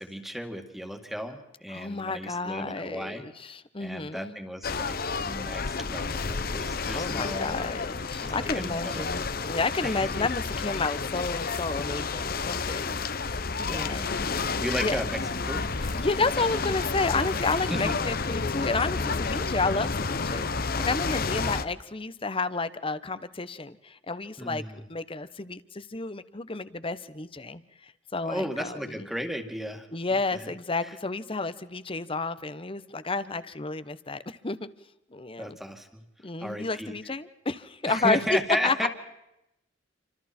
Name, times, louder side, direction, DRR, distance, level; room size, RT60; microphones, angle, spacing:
voice 1, 0.0-3.2 3.8-7.6 8.2-9.5 9.8-10.1 13.6-16.1 17.7-18.1 24.4-24.8 28.2-30.5 30.8-30.9 35.4-36.0 36.4-36.9 37.9-38.9, equal, ahead, 5 dB, 2.2 m, -35 dB
voice 2, 1.7-4.4 6.9-13.0 13.7-14.3 14.8-15.0 16.0-29.1 29.9-34.7 35.1-35.6 36.2-38.4 38.6-38.9, left 3 dB, 30° left, 14 dB, 1.0 m, -31 dB
sound 1, 4.6-21.6, left 4 dB, 55° left, 0.9 m, -31 dB
sound 2, 13.4-21.0, left 1 dB, 75° left, 3.8 m, -40 dB
28.5 x 25.5 x 4.4 m, 0.88 s
head